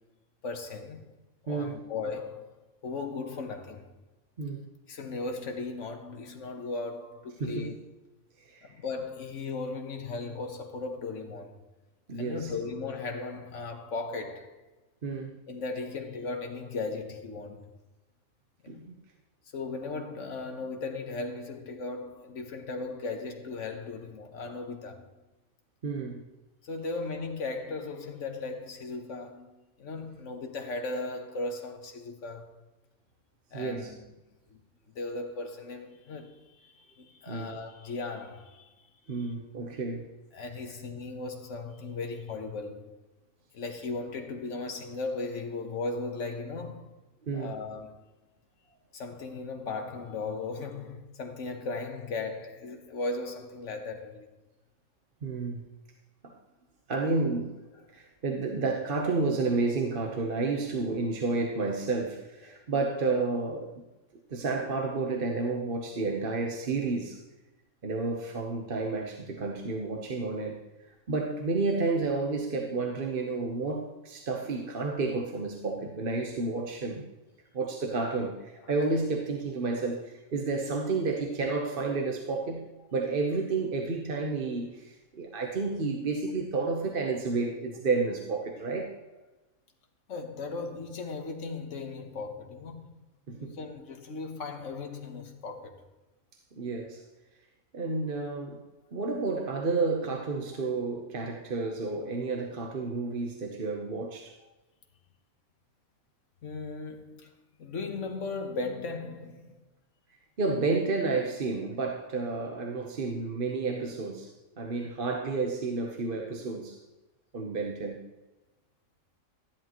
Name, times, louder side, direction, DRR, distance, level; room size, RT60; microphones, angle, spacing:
voice 1, 0.4-1.1 1.4-3.9 4.9-7.8 8.6-11.6 12.2-14.6 15.5-17.6 18.6-18.8 19.5-25.1 26.6-29.5 29.8-32.6 33.5-34.0 34.5-34.6 34.9-38.7 39.2-39.3 40.3-42.9 43.5-46.9 47.3-48.0 48.9-54.3 62.5-62.6 90.1-93.0 93.4-95.8 101.6-101.7 106.4-107.3 107.6-109.6 111.6-111.7, left 3 dB, 60° left, 1.5 m, -37 dB
voice 2, 1.5-1.8 4.4-4.6 7.4-7.7 8.4-8.7 12.1-12.5 15.0-15.4 18.7-18.9 25.8-26.3 33.5-33.9 37.3-37.6 39.1-40.1 47.3-47.5 55.2-55.6 56.2-56.4 56.9-57.5 57.9-63.7 64.3-67.2 67.8-70.6 71.1-77.0 77.5-82.6 82.9-88.9 93.3-93.6 96.6-97.0 97.7-98.6 98.9-104.3 110.4-114.3 114.6-116.8 117.3-118.0, right 3 dB, 45° right, 1.1 m, -31 dB
13.5 x 10.5 x 3.0 m
omnidirectional pair, 1.4 m